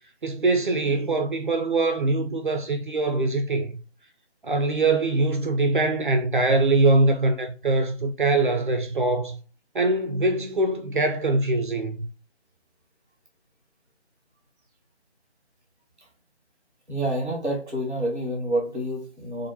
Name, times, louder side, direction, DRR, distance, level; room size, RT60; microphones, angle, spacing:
voice 1, 0.2-3.8 4.4-9.4 9.7-12.0, right 2 dB, 50° right, 0.5 m, -23 dB
voice 2, 16.9-19.5, right 1 dB, ahead, 0.8 m, -28 dB
4.2 x 2.6 x 2.8 m
figure-of-eight pair, 160°, 33 cm